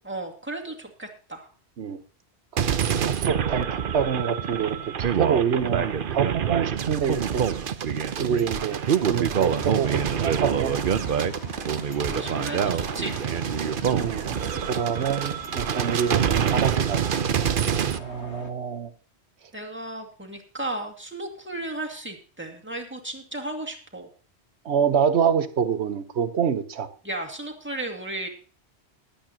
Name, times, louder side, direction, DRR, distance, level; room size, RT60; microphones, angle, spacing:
voice 1, 0.0-1.5 12.1-13.1 17.3-17.6 19.5-24.1 27.0-28.3, right 2 dB, 10° right, 1 dB, 2.2 m, -34 dB
sound 1, 2.6-18.0, right 8 dB, 55° right, 0.9 m, -26 dB
voice 2, 3.0-7.4 8.2-10.7 13.9-17.0 17.9-18.9 24.6-26.9, right 7 dB, 75° right, 11 dB, 1.3 m, -26 dB
sound 2, 9.4-18.5, left 4 dB, 80° left, 1.6 m, -43 dB
20.5 x 8.6 x 2.9 m, 0.39 s
omnidirectional pair, 1.1 m